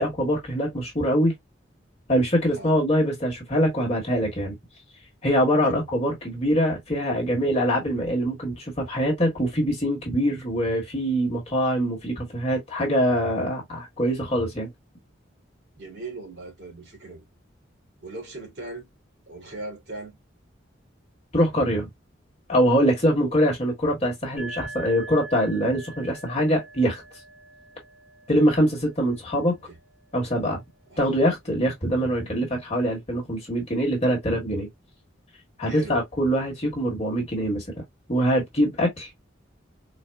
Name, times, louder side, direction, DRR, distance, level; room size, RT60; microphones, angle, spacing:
voice 1, 0.0-1.3 2.1-4.6 5.2-14.7 21.3-21.9 22.5-27.0 28.3-29.6 30.1-30.6 31.0-34.7 35.6-37.6 38.1-39.1, equal, 35° left, 1.3 m, -23 dB
voice 2, 15.7-17.2 18.0-18.9 19.3-20.1 29.5-29.8 30.9-31.2 35.7-36.0, right 2 dB, 60° right, 2.3 m, -39 dB
sound 1, 24.4-31.9, right 2 dB, 5° left, 1.1 m, -45 dB
4.2 x 2.2 x 2.2 m
head